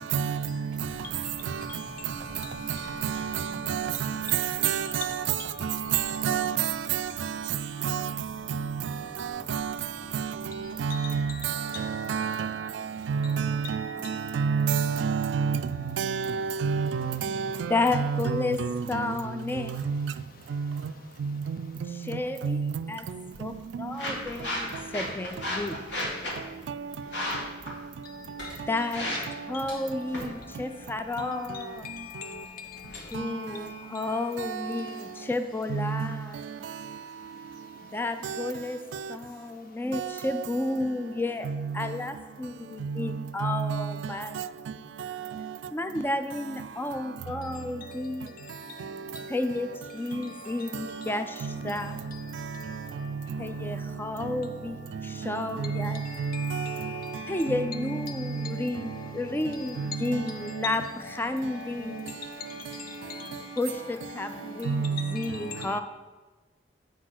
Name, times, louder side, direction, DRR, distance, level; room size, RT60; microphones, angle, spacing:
sound 1, 0.8-11.1, equal, 35° left, 1.4 m, -50 dB
voice 1, 4.6-5.0 6.2-6.5 9.5-9.6 10.8-11.3 12.1-12.5 13.1-13.8 14.4-15.6 16.0-17.5 17.9-18.2 18.6-18.7 19.9-20.0 22.4-22.7 35.7-35.9 43.4-43.6 56.2-56.3 64.7-65.0, right 6 dB, 75° right, 0.3 m, -27 dB
voice 2, 17.7-18.6 18.9-19.7 21.9-23.1 23.4-25.8 28.7-29.2 29.5-31.8 33.1-36.5 37.8-38.8 39.1-41.5 41.7-44.4 45.7-48.4 49.3-52.0 53.4-56.0 57.3-60.8 61.2-62.1 63.6-65.8, left 2 dB, 10° left, 0.3 m, -32 dB
sound 2, 23.0-33.0, left 1 dB, 70° left, 2.0 m, -37 dB
sound 3, 28.3-34.9, left 1 dB, 90° left, 2.9 m, -51 dB
voice 3, 31.8-32.4 56.3-57.4 63.1-63.2 65.6-65.8, left 6 dB, 50° left, 0.8 m, -40 dB
8.1 x 4.5 x 6.0 m
head